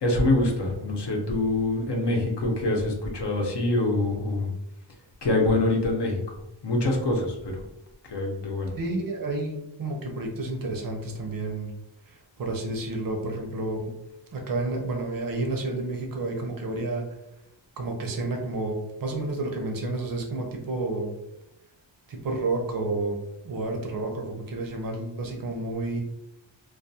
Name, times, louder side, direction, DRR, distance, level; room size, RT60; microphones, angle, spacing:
voice 1, 0.0-4.5 5.2-6.2 6.6-7.6 8.1-8.7, left 2 dB, 60° left, 0 dB, 0.7 m, -25 dB
voice 2, 8.8-11.7 12.1-13.9 14.3-17.1 17.8-21.1 22.1-23.2 23.4-26.0, right 2 dB, 45° right, 2 dB, 0.6 m, -30 dB
2.3 x 2.2 x 2.6 m, 0.87 s
wide cardioid pair, 140°, 47 cm